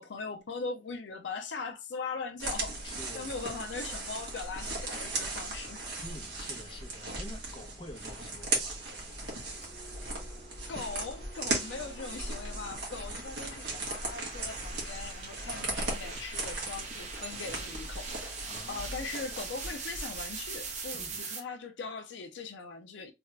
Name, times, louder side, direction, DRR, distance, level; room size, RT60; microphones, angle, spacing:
voice 1, 0.0-2.8 3.1-5.8 10.7-18.4 18.7-23.1, left 4 dB, 75° left, 0.5 m, -40 dB
sound 1, 2.4-21.2, right 2 dB, 65° right, 1.4 m, -38 dB
voice 2, 2.8-3.3 6.0-8.7 18.4-19.0 20.9-21.3, left 1 dB, 30° left, 0.8 m, -48 dB
Engine, 5.6-12.8, right 1 dB, 45° left, 1.4 m, -57 dB
sound 2, 9.3-21.4, right 4 dB, 40° right, 0.8 m, -44 dB
3.4 x 2.4 x 3.2 m
head